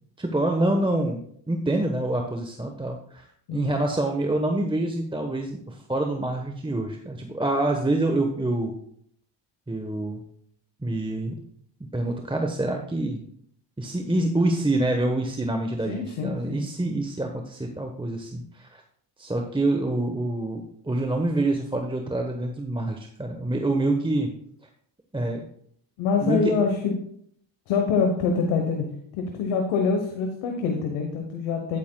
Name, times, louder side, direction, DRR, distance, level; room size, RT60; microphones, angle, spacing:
voice 1, 0.2-8.8 9.7-10.2 10.8-11.3 11.9-13.2 13.8-18.8 19.2-24.3 25.1-25.4 26.2-26.5, right 2 dB, 10° right, 3 dB, 1.1 m, -26 dB
voice 2, 15.9-16.6 26.0-26.9 27.7-28.8 29.1-31.8, left 5 dB, 85° left, 4 dB, 1.2 m, -25 dB
10.5 x 9.5 x 2.3 m, 0.65 s
supercardioid pair, 55°, 49 cm